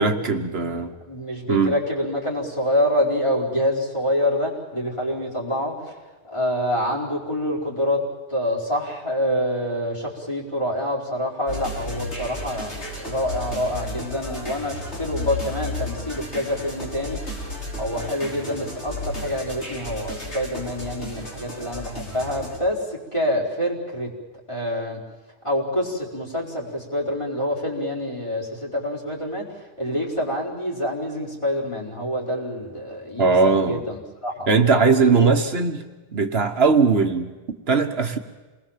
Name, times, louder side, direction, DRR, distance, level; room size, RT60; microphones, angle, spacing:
voice 1, 0.0-0.9 1.5-1.8 33.2-33.8 34.5-35.8 36.1-37.3 37.7-38.2, right 4 dB, 65° right, 5 dB, 1.5 m, -19 dB
voice 2, 1.1-6.0 6.2-8.0 8.3-17.3 17.8-24.1 24.5-25.0 25.4-35.4, left 1 dB, 25° left, -4 dB, 4.9 m, -26 dB
sound 1, 11.5-22.6, left 1 dB, 85° left, 5.9 m, -33 dB
28.0 x 20.5 x 7.5 m, 1.2 s
omnidirectional pair, 1.1 m